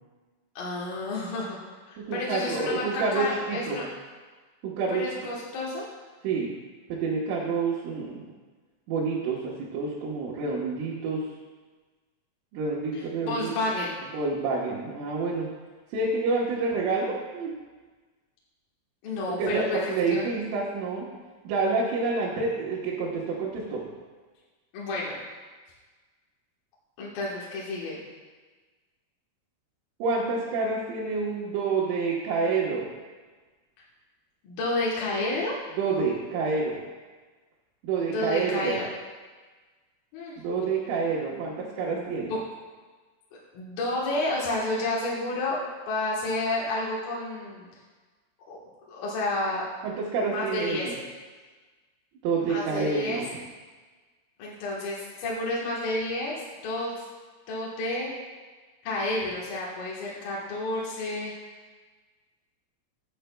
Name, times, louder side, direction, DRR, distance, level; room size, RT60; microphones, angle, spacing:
voice 1, 0.6-1.6 1.9-3.9 4.9-5.9 12.9-13.9 19.0-20.3 24.7-25.2 27.0-28.0 34.4-35.5 38.1-38.9 40.1-40.4 41.9-42.4 43.5-45.6 45.9-47.7 48.5-48.6 48.9-49.6 50.2-50.8 52.4-53.2 54.4-57.0 57.5-58.1 58.8-61.3, left 2 dB, 65° left, -5 dB, 2.6 m, -30 dB
voice 2, 2.0-3.8 4.6-5.3 6.2-6.5 6.9-8.3 8.9-11.3 12.5-13.5 14.1-15.5 15.9-17.5 19.4-21.1 21.5-23.9 30.0-32.9 35.8-36.8 37.8-38.8 40.4-42.3 49.8-51.0 52.2-53.4, right 4 dB, 85° right, -7 dB, 3.8 m, -28 dB
14.5 x 9.1 x 2.3 m, 1.4 s
omnidirectional pair, 5.6 m